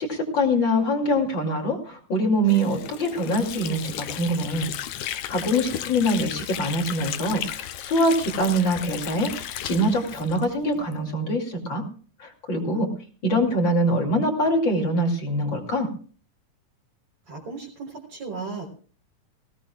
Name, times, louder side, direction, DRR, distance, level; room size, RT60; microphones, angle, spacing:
voice 1, 0.0-4.7 5.1-11.8 12.2-12.9 13.2-15.9, equal, 35° left, 2 dB, 2.9 m, -24 dB
Water / Sink (filling or washing), 2.5-11.0, left 11 dB, 70° left, 2.0 m, -35 dB
voice 2, 17.3-18.7, right 4 dB, 40° right, -2 dB, 4.6 m, -35 dB
20.5 x 17.5 x 2.3 m, 0.41 s
omnidirectional pair, 3.8 m